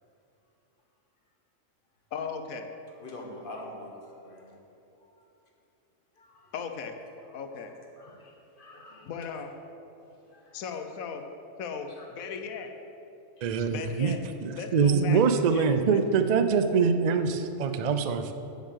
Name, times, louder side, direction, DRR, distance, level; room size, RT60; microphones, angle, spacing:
voice 1, 2.1-2.7 6.5-7.0 7.3-7.7 9.1-9.5 10.5-11.3 11.6-12.7 13.7-14.2 14.5-15.2 15.5-16.0, left 6 dB, 85° left, 6 dB, 1.2 m, -37 dB
voice 2, 3.0-4.6 5.0-5.3 6.2-6.5 7.3-7.7 8.0-9.4 10.0-10.8 12.0-12.1 13.4-13.6, left 1 dB, 40° left, 0 dB, 1.5 m, -47 dB
voice 3, 13.4-14.2 14.4-18.3, right 5 dB, 90° right, 9 dB, 0.3 m, -24 dB
7.4 x 7.3 x 8.1 m, 2.9 s
omnidirectional pair, 1.4 m